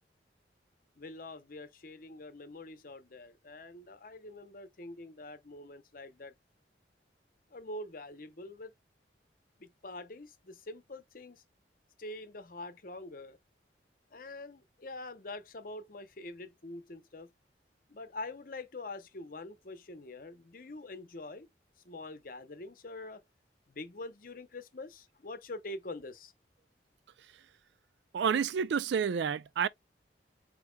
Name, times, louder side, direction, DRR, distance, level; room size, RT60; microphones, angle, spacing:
voice 1, 1.0-6.3 7.5-8.7 9.6-11.4 12.0-13.4 14.1-17.3 17.9-21.5 21.8-23.2 23.7-26.3, left 2 dB, 50° left, 0.8 m, -45 dB
voice 2, 28.1-29.7, right 7 dB, 75° right, 0.3 m, -29 dB
8.1 x 2.8 x 2.2 m
head